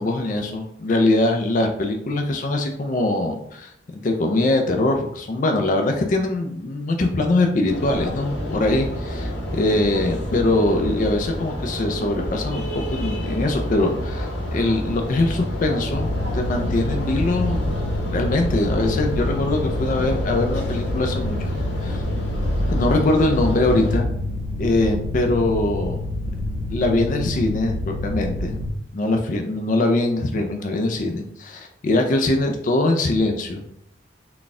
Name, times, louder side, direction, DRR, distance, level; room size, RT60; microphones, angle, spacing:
voice 1, 0.0-3.7 4.0-12.6 12.9-17.7 18.1-21.5 21.8-22.0 22.7-24.1 24.6-26.0 26.7-27.7 28.0-28.5 28.9-33.6, left 2 dB, 45° left, 3 dB, 0.4 m, -22 dB
sound 1, 7.7-24.0, equal, 70° left, 1.0 m, -28 dB
Mechanical fan, 15.9-28.7, left 2 dB, 30° right, 0.4 m, -28 dB
4.0 x 2.2 x 3.6 m, 0.76 s
head